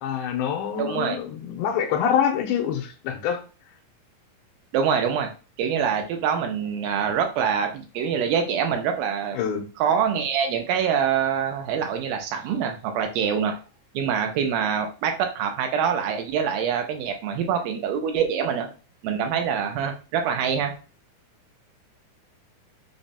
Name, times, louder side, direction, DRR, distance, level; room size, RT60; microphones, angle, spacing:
voice 1, 0.0-3.4 9.4-9.6, left 8 dB, 85° left, 2.4 m, -25 dB
voice 2, 0.8-1.2 4.7-5.3 5.6-9.4 9.8-13.6 13.9-18.7 19.0-20.7, right 7 dB, 80° right, 2.3 m, -25 dB
5.9 x 2.1 x 2.6 m
omnidirectional pair, 4.3 m